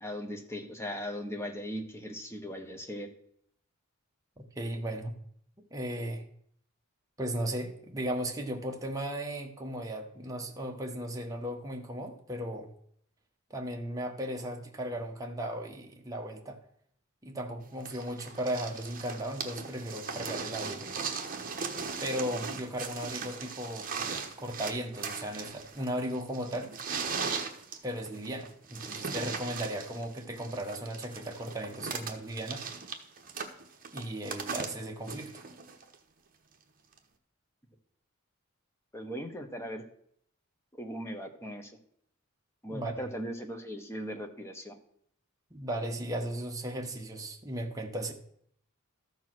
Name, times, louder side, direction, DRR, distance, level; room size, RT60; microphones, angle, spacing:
voice 1, 0.0-3.1 38.9-39.8 40.8-41.7 42.6-44.8, equal, 10° left, 4 dB, 1.1 m, -38 dB
voice 2, 4.4-5.1 5.7-6.2 7.2-12.7 13.5-16.6 17.2-20.9 22.0-24.1 24.4-26.8 27.8-32.6 33.9-35.4 42.7-43.1 45.5-48.1, right 1 dB, 15° right, 2 dB, 1.1 m, -36 dB
sound 1, 17.9-35.9 37.0-37.1, right 5 dB, 40° right, 1.1 m, -38 dB
13.5 x 4.7 x 6.1 m, 0.67 s
head